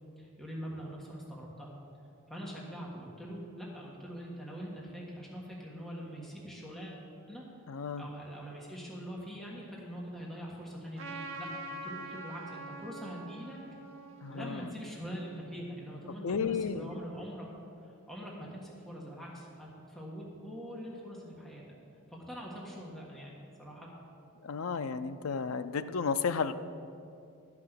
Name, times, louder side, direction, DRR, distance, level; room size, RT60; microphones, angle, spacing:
voice 1, 0.2-1.8 2.3-7.4 8.0-13.6 14.3-17.5 17.8-21.6 22.1-23.9, equal, ahead, -4 dB, 1.6 m, -43 dB
voice 2, 7.7-8.0 14.2-14.6 16.2-16.9 24.4-26.5, left 5 dB, 70° left, 11 dB, 0.5 m, -33 dB
Trumpet, 11.0-15.6, right 2 dB, 65° right, 1.1 m, -45 dB
11.5 x 6.0 x 8.1 m, 2.6 s
head